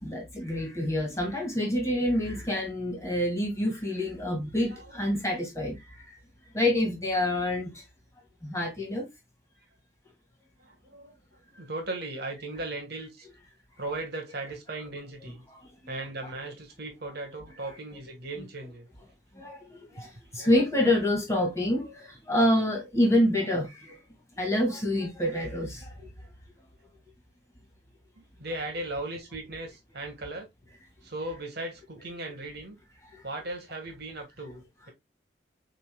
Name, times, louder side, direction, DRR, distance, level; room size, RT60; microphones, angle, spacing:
voice 1, 0.0-5.8 6.5-7.7 8.4-9.1 19.4-19.6 20.0-20.1 20.3-23.9 24.4-25.9, left 1 dB, 15° left, 1.9 m, -27 dB
voice 2, 4.7-5.1 10.6-11.2 11.6-13.3 13.8-15.4 15.9-18.9 26.0-26.1 28.2-30.5 31.0-32.8 33.2-34.9, right 2 dB, 60° right, 1.5 m, -37 dB
7.1 x 2.8 x 2.2 m
head